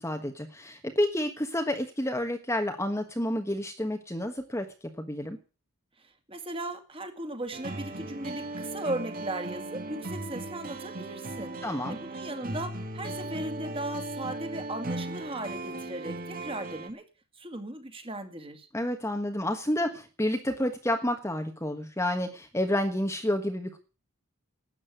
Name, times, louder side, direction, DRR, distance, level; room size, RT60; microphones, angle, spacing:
voice 1, 0.0-4.7 5.0-5.4 11.6-12.0 18.7-23.8, left 1 dB, 10° left, 5 dB, 1.3 m, -29 dB
voice 2, 6.0-17.0 17.3-18.7, right 1 dB, 25° right, 6 dB, 2.3 m, -37 dB
sound 1, 7.5-16.9, right 2 dB, 40° right, 2.0 m, -37 dB
12.5 x 8.8 x 9.2 m, 0.35 s
head